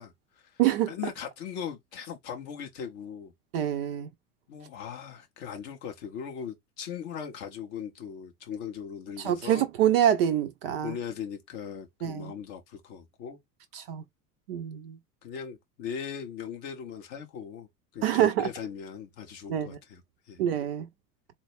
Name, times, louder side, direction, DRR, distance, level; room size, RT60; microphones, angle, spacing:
voice 1, 0.0-0.6 0.9-3.3 4.5-9.6 10.8-13.4 15.2-17.7 17.9-20.4, left 7 dB, 25° left, 0.4 m, -39 dB
voice 2, 0.6-0.9 3.5-4.1 9.2-10.9 12.0-12.3 13.7-14.0 14.5-15.0 18.0-18.5 19.5-19.8 20.4-20.9, right 10 dB, 40° right, 0.4 m, -26 dB
3.9 x 2.2 x 3.1 m
figure-of-eight pair, 80°, 50 cm